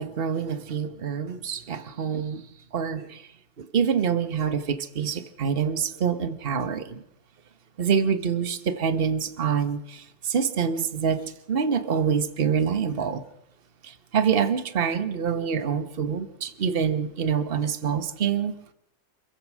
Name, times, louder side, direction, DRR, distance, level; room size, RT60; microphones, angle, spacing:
voice 1, 0.0-2.5 2.7-3.3 3.6-7.0 7.8-13.2 13.8-18.5, right 7 dB, 40° right, 1.3 m, -26 dB
26.5 x 15.5 x 6.2 m
omnidirectional pair, 1.6 m